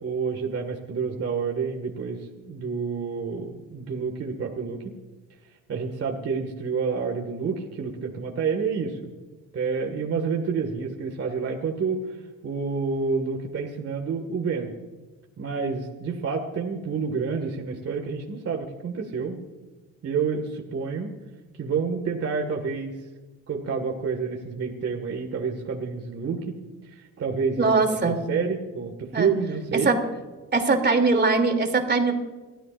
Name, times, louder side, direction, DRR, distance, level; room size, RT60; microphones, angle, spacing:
voice 1, 0.0-5.0 5.7-9.1 9.5-12.0 12.4-14.7 15.4-19.4 20.0-21.1 21.6-23.0 23.5-26.6 26.8-29.9, right 5 dB, 50° right, 1 dB, 2.0 m, -29 dB
voice 2, 27.6-28.2 29.1-29.3 29.7-30.0 30.5-32.1, right 3 dB, 35° right, 4 dB, 3.0 m, -21 dB
29.5 x 13.5 x 2.6 m, 1.3 s
cardioid pair, 90°, 30 cm